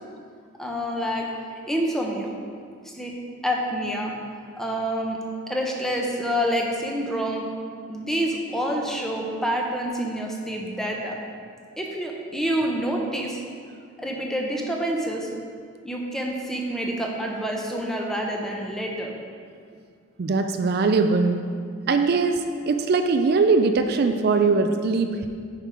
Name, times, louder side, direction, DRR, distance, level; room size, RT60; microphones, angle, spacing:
voice 1, 0.6-1.3 1.7-2.3 2.8-3.1 3.4-4.2 4.6-5.2 5.5-7.5 7.9-11.1 11.8-13.4 14.0-15.3 15.8-19.1, equal, ahead, -1 dB, 0.8 m, -27 dB
voice 2, 20.2-21.4 21.9-25.3, right 4 dB, 55° right, 7 dB, 0.4 m, -21 dB
9.0 x 4.6 x 5.0 m, 2.2 s
head